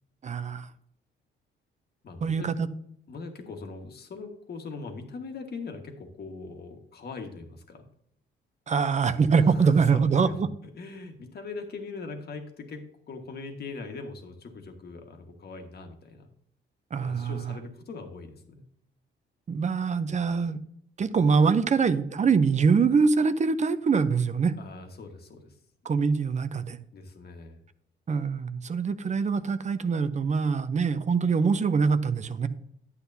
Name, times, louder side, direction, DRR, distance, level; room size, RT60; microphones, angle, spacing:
voice 1, 0.2-0.7 2.2-2.7 8.7-10.5 16.9-17.5 19.5-20.6 21.0-24.5 25.8-26.8 28.1-32.5, right 5 dB, 35° right, 12 dB, 0.7 m, -24 dB
voice 2, 2.0-2.5 3.1-7.8 9.5-10.5 10.7-16.3 17.0-18.6 24.6-25.5 26.9-27.6, left 4 dB, 55° left, 4 dB, 1.7 m, -41 dB
11.0 x 8.1 x 2.8 m, 0.70 s
cardioid pair, 90°, 20 cm